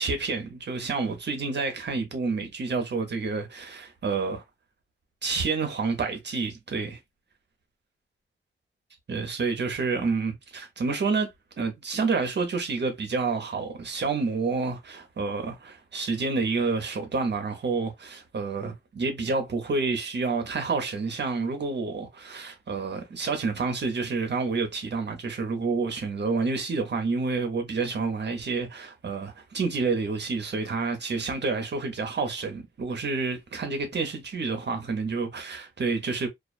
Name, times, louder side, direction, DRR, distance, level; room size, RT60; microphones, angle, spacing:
voice 1, 0.0-4.4 5.2-7.0 9.1-11.3 11.6-36.3, right 4 dB, 55° right, 0.7 m, -29 dB
2.4 x 2.2 x 2.4 m
wide cardioid pair, 85°, 21 cm